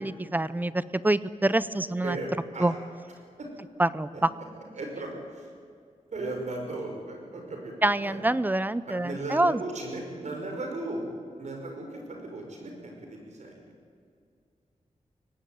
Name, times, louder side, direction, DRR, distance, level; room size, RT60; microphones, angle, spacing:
voice 1, 0.0-2.2 2.6-2.7 3.8-4.3 7.8-9.6, right 1 dB, 15° right, 16 dB, 0.6 m, -26 dB
voice 2, 2.0-2.7 3.4-3.5 4.1-4.2 4.7-5.5 6.1-7.7 8.0-8.2 8.9-11.1 11.4-13.7, right 2 dB, 65° right, 2 dB, 5.7 m, -36 dB
23.5 x 18.0 x 9.3 m, 2.4 s
wide cardioid pair, 155°, 13 cm